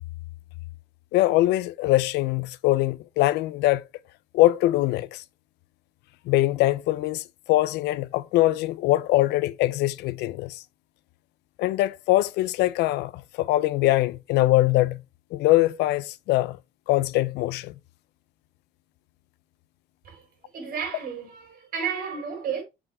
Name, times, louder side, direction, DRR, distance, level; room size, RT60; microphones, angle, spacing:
voice 1, 1.1-3.8 4.3-5.2 6.3-10.6 11.6-15.0 15.3-16.6 16.9-17.7, left 17 dB, 85° left, 0.5 m, -22 dB
voice 2, 20.5-22.6, right 7 dB, 60° right, 4.3 m, -32 dB
7.4 x 5.3 x 3.5 m
cardioid pair, 110°, 17 cm